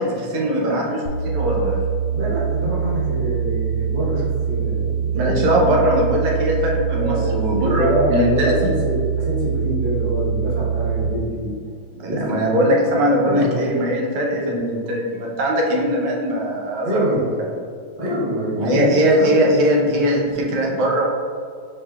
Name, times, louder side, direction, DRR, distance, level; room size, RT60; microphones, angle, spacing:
voice 1, 0.0-1.8 5.2-8.5 12.0-17.2 18.6-21.1, equal, 85° right, -2 dB, 1.7 m, -20 dB
sound 1, 1.1-11.1, right 8 dB, 75° left, 1.3 m, -24 dB
voice 2, 2.1-5.4 5.7-5.8 6.9-11.6 12.0-12.4 13.0-13.5 16.8-17.3 17.9-19.3, equal, 40° right, -6 dB, 0.7 m, -25 dB
4.5 x 4.4 x 2.3 m, 2.2 s
omnidirectional pair, 2.4 m